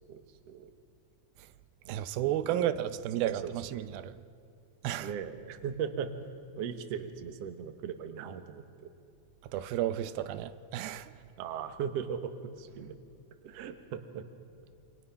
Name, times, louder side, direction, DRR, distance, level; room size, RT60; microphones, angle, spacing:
voice 1, 0.1-0.7 1.8-2.7 3.2-3.8 5.0-6.1 6.6-8.9 11.4-12.9 13.4-14.3, right 7 dB, 60° right, 1.8 m, -39 dB
voice 2, 1.9-4.1 4.8-5.1 9.5-11.1, right 12 dB, 90° right, 2.6 m, -32 dB
27.5 x 25.5 x 5.7 m
omnidirectional pair, 4.1 m